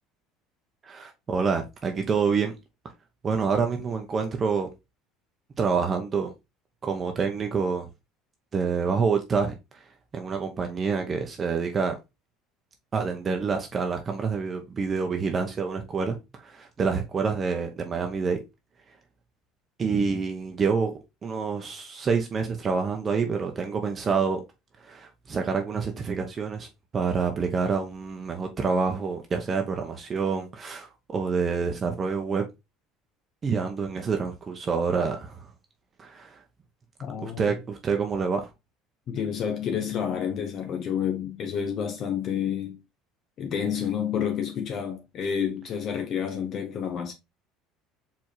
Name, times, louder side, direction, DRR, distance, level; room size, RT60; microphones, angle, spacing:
voice 1, 0.8-2.6 3.2-4.7 5.6-6.3 6.8-7.9 8.5-9.8 10.1-11.9 12.9-18.4 19.8-20.9 21.2-24.4 24.8-32.4 33.4-35.5 36.0-36.4 37.2-38.5, right 5 dB, 35° right, 0.8 m, -27 dB
voice 2, 37.0-37.5 39.1-42.8 43.4-47.1, left 8 dB, 50° left, 0.9 m, -29 dB
4.4 x 3.5 x 3.0 m
supercardioid pair, 95°, 0 cm